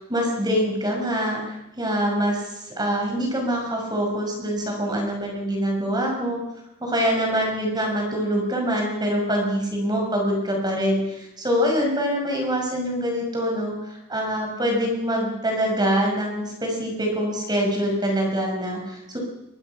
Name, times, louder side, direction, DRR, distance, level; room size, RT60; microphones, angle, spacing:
voice 1, 0.1-1.4 1.8-6.4 6.8-19.2, equal, 20° right, 1 dB, 5.8 m, -24 dB
23.0 x 22.5 x 5.8 m, 0.90 s
head